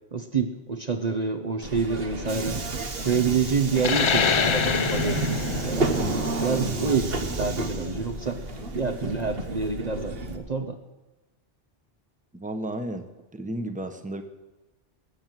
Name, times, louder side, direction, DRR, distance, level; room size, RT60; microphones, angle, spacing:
voice 1, 0.1-2.6 3.0-6.0 6.4-8.4 8.7-10.8, right 5 dB, 40° right, 6 dB, 1.0 m, -27 dB
Subway metro underground, 1.6-10.4, right 2 dB, 65° right, 1.6 m, -30 dB
sound 1, 3.8-8.9, left 6 dB, 40° left, 0.4 m, -27 dB
voice 2, 12.3-13.1 13.3-14.2, right 1 dB, 10° right, 7 dB, 1.1 m, -32 dB
20.0 x 8.0 x 7.7 m, 1.1 s
omnidirectional pair, 1.1 m